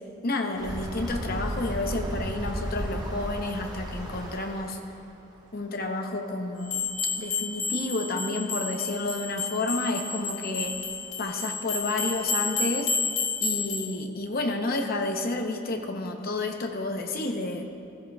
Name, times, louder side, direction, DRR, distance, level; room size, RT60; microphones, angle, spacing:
voice 1, 0.2-4.8 5.5-6.9 7.2-10.8 11.2-12.9 13.4-17.6, left 2 dB, 50° left, 4 dB, 0.8 m, -30 dB
sound 1, 0.5-4.9 6.8-6.9 7.1-7.2 8.1-8.2 10.7-10.8 11.3-11.4 11.9-12.1, equal, 20° right, 1.2 m, -34 dB
sound 2, 6.7-13.9, left 4 dB, 65° left, 2.0 m, -30 dB
14.0 x 13.5 x 2.4 m, 2.5 s
head